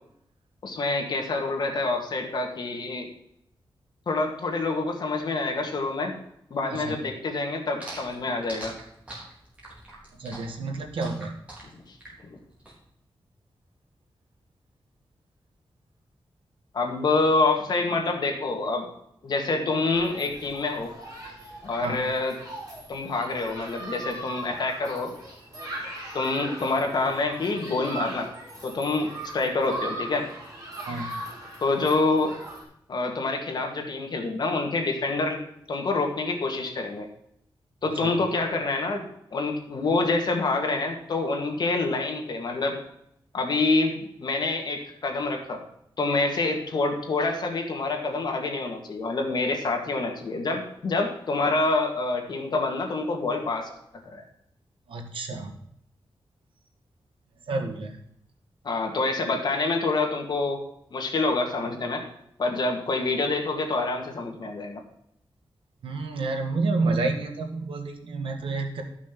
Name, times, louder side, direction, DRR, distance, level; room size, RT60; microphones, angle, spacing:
voice 1, 0.6-3.1 4.1-6.1 6.5-8.7 11.9-12.0 12.3-12.4 16.7-18.9 19.2-20.9 21.6-22.4 22.9-25.1 26.1-28.3 28.6-30.3 31.6-32.4 32.9-35.4 35.7-37.1 37.8-39.0 39.3-42.8 43.3-45.6 46.0-53.7 54.1-54.2 58.6-60.6 60.9-62.0 62.4-64.8, left 3 dB, 55° left, 2 dB, 1.9 m, -27 dB
sound 1, 7.8-12.7, right 2 dB, 15° right, 3.8 m, -42 dB
voice 2, 10.2-11.3 21.8-22.0 30.9-31.1 38.0-38.1 54.9-55.5 57.5-58.0 65.8-68.8, right 3 dB, 80° right, 3 dB, 1.8 m, -29 dB
Human group actions, 19.9-32.6, right 1 dB, 40° right, 5.4 m, -39 dB
12.5 x 6.1 x 6.0 m, 0.75 s
wide cardioid pair, 180°, 9 cm